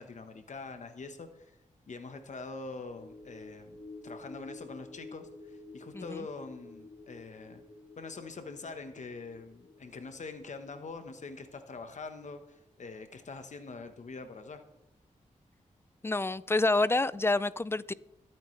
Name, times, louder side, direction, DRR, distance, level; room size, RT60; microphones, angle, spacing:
voice 1, 0.0-1.6 1.9-7.6 8.0-14.6, left 4 dB, 65° left, 1.2 m, -44 dB
sound 1, 2.9-13.5 13.8-14.0, left 2 dB, 45° left, 2.4 m, -51 dB
voice 2, 5.9-6.3 16.0-17.9, left 2 dB, 20° left, 0.4 m, -28 dB
21.5 x 9.0 x 3.2 m
wide cardioid pair, 90°, 13 cm